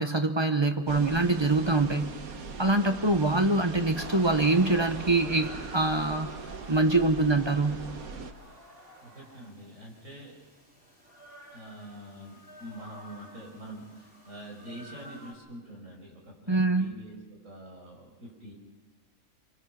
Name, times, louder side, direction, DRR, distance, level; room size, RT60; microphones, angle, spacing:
voice 1, 0.0-2.1 2.6-6.3 6.7-7.8 16.5-16.9, right 2 dB, 20° right, 7 dB, 0.9 m, -24 dB
sound 1, 0.9-8.3, right 5 dB, 80° right, 1.7 m, -40 dB
sound 2, 3.9-9.5, right 1 dB, 40° right, 2.6 m, -47 dB
sound 3, 8.3-15.3, equal, 5° right, 4.4 m, -53 dB
voice 2, 9.0-10.3 11.5-17.1 17.4-18.5, equal, 60° right, -1 dB, 5.6 m, -45 dB
25.5 x 23.5 x 5.9 m, 1.2 s
omnidirectional pair, 1.5 m